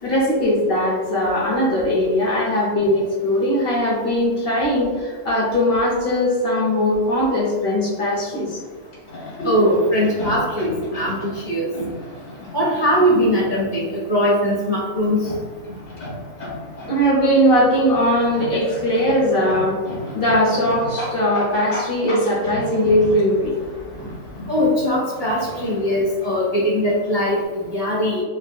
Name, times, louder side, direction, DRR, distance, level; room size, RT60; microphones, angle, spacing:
voice 1, 0.0-8.6 9.4-9.5 16.8-19.8 20.1-23.5, equal, 55° left, -5 dB, 0.8 m, -19 dB
sound 1, 7.6-27.4, left 1 dB, 90° left, 1.9 m, -36 dB
voice 2, 9.4-11.7 12.5-15.3 24.5-28.2, equal, 30° right, -7 dB, 0.4 m, -20 dB
4.1 x 2.0 x 2.2 m, 1.5 s
omnidirectional pair, 1.4 m